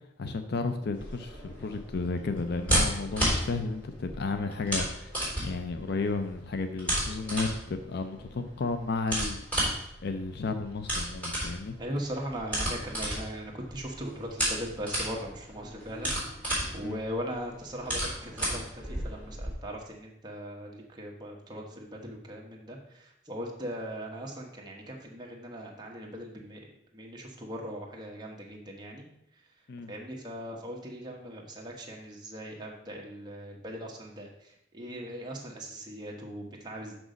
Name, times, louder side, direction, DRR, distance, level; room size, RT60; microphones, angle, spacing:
voice 1, 0.2-5.2 5.4-9.4 10.0-11.8 16.8-17.0 29.7-29.9, left 3 dB, 60° left, 8 dB, 0.5 m, -33 dB
sound 1, 0.9-19.5, equal, 5° left, 3.5 m, -33 dB
voice 2, 11.8-26.6 26.9-29.0 29.9-37.0, equal, 25° right, -1 dB, 1.4 m, -39 dB
6.2 x 6.1 x 5.2 m, 0.76 s
head